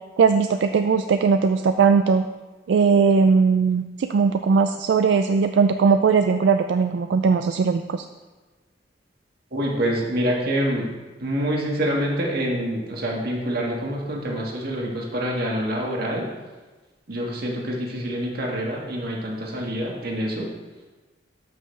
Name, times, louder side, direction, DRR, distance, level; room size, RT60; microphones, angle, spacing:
voice 1, 0.2-2.2 2.7-8.0, right 5 dB, 80° right, 8 dB, 0.3 m, -19 dB
voice 2, 9.5-10.9 11.2-16.3 17.1-20.5, equal, 60° right, -2 dB, 1.6 m, -26 dB
12.0 x 5.4 x 3.2 m, 1.2 s
head